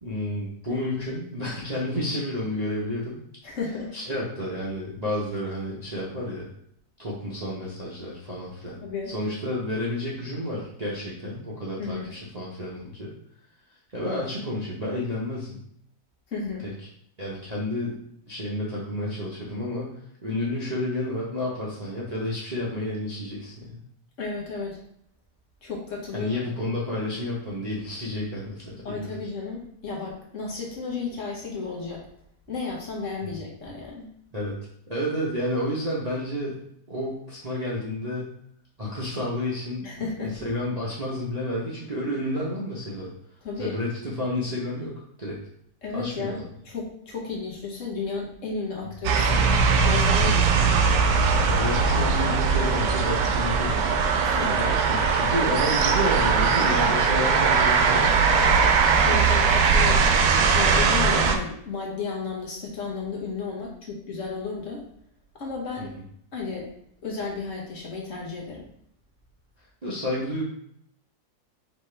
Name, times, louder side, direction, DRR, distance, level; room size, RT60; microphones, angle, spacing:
voice 1, 0.0-3.2 3.9-6.5 7.0-8.8 9.1-13.1 13.9-15.6 16.6-16.7 17.2-17.9 18.2-23.8 26.1-29.1 33.2-33.3 34.3-34.6 34.9-36.6 36.9-38.4 38.8-43.1 43.6-45.4 45.9-46.5 50.2-50.3 51.5-53.9 54.4-58.1 65.8-65.9 69.8-70.4, left 1 dB, 35° right, -7 dB, 0.7 m, -30 dB
voice 2, 3.4-3.9 8.8-9.1 11.8-12.1 16.3-16.7 24.2-24.8 25.6-26.3 28.8-32.1 32.5-34.1 39.8-40.4 43.4-43.8 45.8-46.4 46.6-49.5 49.8-50.4 54.2-54.7 59.0-60.1 60.5-64.9 65.3-65.9 66.3-66.7 67.0-68.6, left 4 dB, 50° left, -2 dB, 1.2 m, -33 dB
sound 1, 49.0-61.4, right 5 dB, 80° right, 1.2 m, -20 dB
4.8 x 3.3 x 3.3 m, 0.69 s
omnidirectional pair, 1.8 m